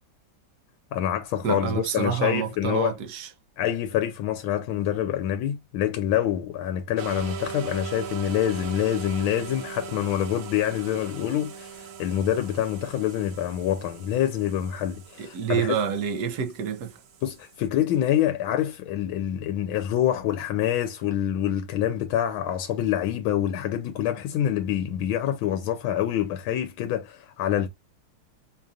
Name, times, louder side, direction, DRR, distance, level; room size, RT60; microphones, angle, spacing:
voice 1, 0.9-2.9 3.6-15.8 17.2-27.7, left 11 dB, 80° left, 1.4 m, -26 dB
voice 2, 1.4-3.3 15.2-16.9, right 7 dB, 65° right, 1.0 m, -28 dB
sound 1, 7.0-17.7, right 7 dB, 80° right, 1.6 m, -40 dB
4.9 x 2.4 x 2.6 m
omnidirectional pair, 2.2 m